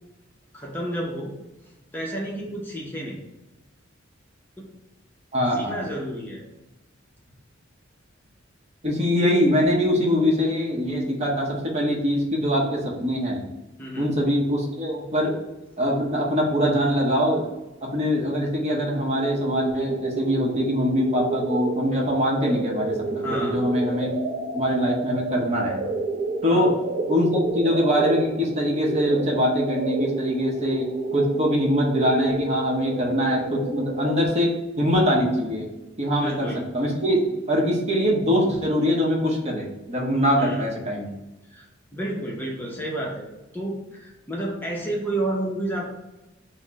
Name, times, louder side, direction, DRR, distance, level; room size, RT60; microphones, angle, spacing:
voice 1, 0.5-1.3 1.9-3.2 4.6-4.7 5.5-6.4 13.8-14.1 23.2-23.6 26.5-26.7 36.1-36.6 40.4-40.6 41.4-43.3 43.5-45.8, right 1 dB, 10° left, -3 dB, 0.6 m, -30 dB
voice 2, 5.3-5.8 8.8-13.4 14.0-15.4 15.8-17.5 17.8-24.1 24.5-25.8 26.4-26.7 27.1-35.7 36.0-36.5 36.7-37.2 37.5-41.1, equal, 35° right, -1 dB, 0.8 m, -23 dB
sound 1, 19.1-34.3, right 3 dB, 60° right, 0.6 m, -30 dB
4.2 x 2.1 x 4.5 m, 1.0 s
head